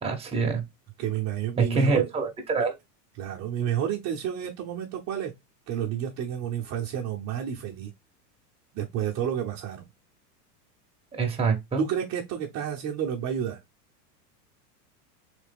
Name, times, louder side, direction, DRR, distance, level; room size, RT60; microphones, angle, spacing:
voice 1, 0.0-0.6 1.6-2.7 11.1-11.8, right 4 dB, 10° right, 1.0 m, -25 dB
voice 2, 1.0-2.1 2.6-2.7 3.2-5.4 5.7-7.9 8.7-9.8 11.8-13.6, right 9 dB, 35° right, 0.8 m, -30 dB
3.3 x 3.1 x 3.4 m
hypercardioid pair, 115°, 47 cm